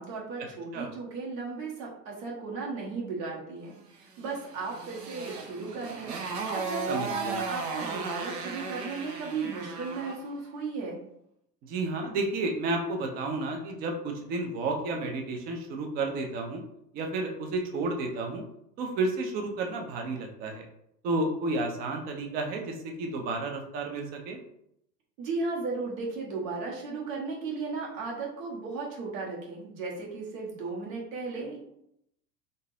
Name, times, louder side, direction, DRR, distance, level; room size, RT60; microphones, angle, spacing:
voice 1, 0.0-6.1 6.5-11.0 25.2-31.6, right 4 dB, 55° right, -3 dB, 1.2 m, -35 dB
Motorcycle, 4.2-10.3, right 4 dB, 70° right, 0.8 m, -36 dB
voice 2, 6.9-7.4 11.7-16.6 16.9-18.4 18.8-20.7 21.0-24.4, right 2 dB, 20° right, 3 dB, 0.4 m, -31 dB
3.7 x 2.5 x 2.7 m, 0.77 s
figure-of-eight pair, 85°, 48 cm